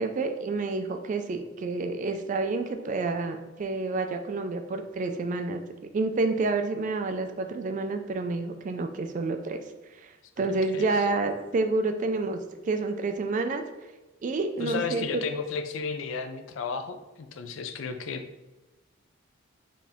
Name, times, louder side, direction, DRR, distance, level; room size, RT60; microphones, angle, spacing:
voice 1, 0.0-5.6 5.9-9.6 10.0-13.6 14.2-15.0, right 3 dB, 40° right, 7 dB, 0.3 m, -29 dB
voice 2, 10.4-10.9 14.6-18.2, left 5 dB, 70° left, 8 dB, 0.4 m, -33 dB
4.1 x 2.7 x 3.5 m, 1.1 s
head